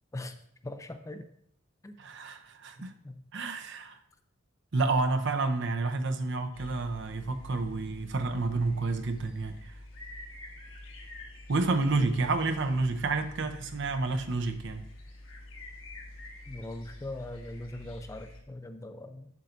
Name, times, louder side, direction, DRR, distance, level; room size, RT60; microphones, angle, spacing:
voice 1, 0.1-1.3 1.8-1.9 3.0-3.2 11.9-12.1 16.5-19.3, left 1 dB, 15° left, 0.4 m, -41 dB
voice 2, 2.0-2.9 3.3-4.0 4.7-9.7 11.5-14.9, right 3 dB, 65° right, 0.7 m, -29 dB
sound 1, 6.5-18.4, left 1 dB, 80° left, 1.3 m, -47 dB
7.9 x 7.4 x 2.6 m
head